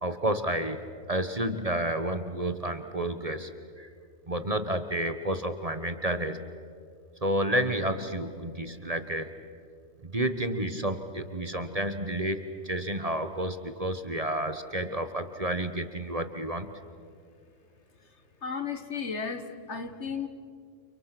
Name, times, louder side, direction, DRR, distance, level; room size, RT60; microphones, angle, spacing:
voice 1, 0.0-0.8 1.1-3.5 3.8-3.9 4.3-6.4 7.2-9.3 10.0-16.7, right 1 dB, 30° right, 9 dB, 1.2 m, -30 dB
voice 2, 18.4-20.3, left 5 dB, 60° left, 9 dB, 1.7 m, -34 dB
30.0 x 29.5 x 6.0 m, 2.3 s
omnidirectional pair, 1.4 m